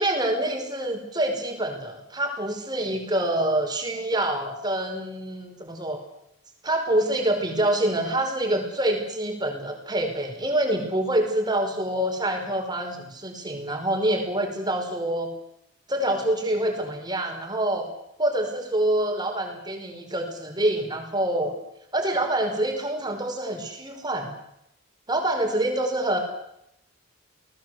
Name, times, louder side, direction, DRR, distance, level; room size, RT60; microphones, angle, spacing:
voice 1, 0.0-6.0 6.6-15.3 15.9-17.9 18.2-21.5 21.9-24.3 25.1-26.2, right 1 dB, 20° right, 4 dB, 5.4 m, -26 dB
29.0 x 19.5 x 8.1 m, 0.78 s
head